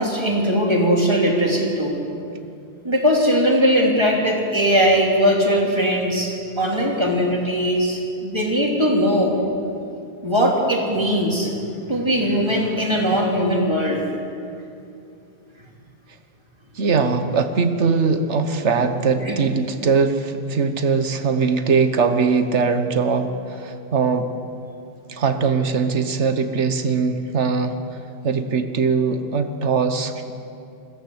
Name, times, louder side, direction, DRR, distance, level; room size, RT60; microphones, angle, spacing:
voice 1, 0.0-2.0 2.8-9.4 10.2-11.5 11.8-14.1 19.2-19.4, equal, 25° right, -1 dB, 3.3 m, -20 dB
voice 2, 16.8-24.3 25.1-27.8 28.2-30.3, right 5 dB, 80° right, 8 dB, 1.5 m, -21 dB
21.5 x 16.0 x 8.0 m, 2.6 s
omnidirectional pair, 1.2 m